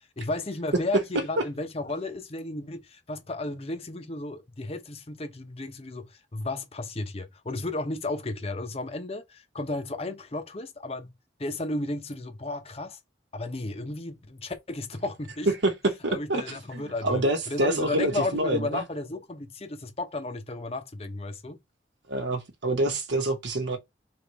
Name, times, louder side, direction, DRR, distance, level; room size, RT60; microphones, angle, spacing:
voice 1, 0.2-11.1 11.4-13.0 13.3-15.5 16.1-21.6, left 2 dB, 30° left, 0.8 m, -33 dB
voice 2, 15.6-18.8 22.1-23.8, right 1 dB, 70° right, 1.0 m, -27 dB
3.5 x 3.1 x 4.6 m
head